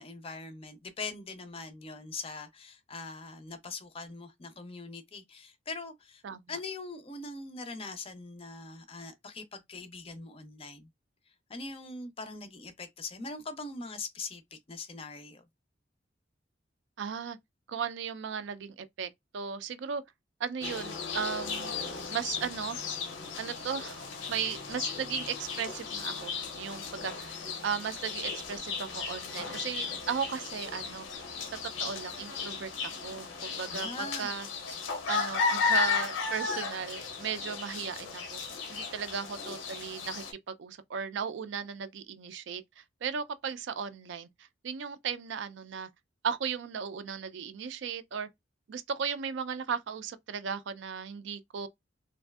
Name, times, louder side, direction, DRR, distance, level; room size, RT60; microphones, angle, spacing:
voice 1, 0.0-6.2 6.5-10.9 11.5-15.4 33.7-34.3, left 3 dB, 30° left, 0.5 m, -42 dB
voice 2, 6.2-6.6 17.0-17.4 17.7-20.0 20.4-21.7 22.1-22.8 23.4-31.1 31.8-34.5 35.1-38.4 38.7-45.9 46.2-48.3 48.7-51.7, right 7 dB, 70° right, 0.4 m, -36 dB
sound 1, 20.6-40.3, left 5 dB, 90° left, 0.7 m, -35 dB
3.1 x 2.5 x 2.3 m
head